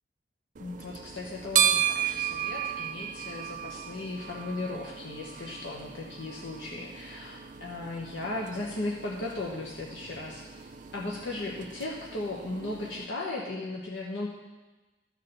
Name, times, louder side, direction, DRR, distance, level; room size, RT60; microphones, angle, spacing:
voice 1, 0.6-14.3, left 2 dB, 80° left, -3 dB, 1.2 m, -36 dB
sound 1, 0.6-13.1, right 9 dB, 45° right, 0.4 m, -34 dB
12.5 x 4.4 x 6.7 m, 1.2 s
head